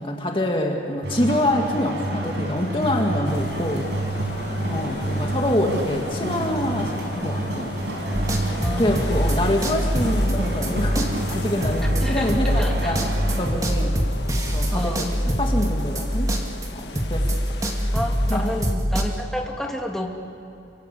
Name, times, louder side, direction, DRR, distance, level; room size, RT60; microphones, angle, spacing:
voice 1, 0.0-3.9 4.7-7.7 8.8-13.1 13.4-14.0 14.5-16.4 16.7-17.4 18.3-18.5, left 1 dB, 30° left, 2 dB, 2.1 m, -26 dB
sound 1, 1.0-13.5, right 1 dB, 80° right, 6.3 m, -28 dB
sound 2, 3.2-18.8, left 2 dB, 75° left, 1.6 m, -37 dB
sound 3, 8.1-16.7 17.0-19.0, equal, 20° right, 2.2 m, -24 dB
voice 2, 8.6-9.0 12.0-13.0 14.7-15.1 17.9-20.1, equal, ahead, 0 dB, 2.6 m, -30 dB
28.0 x 24.5 x 8.5 m, 2.8 s
head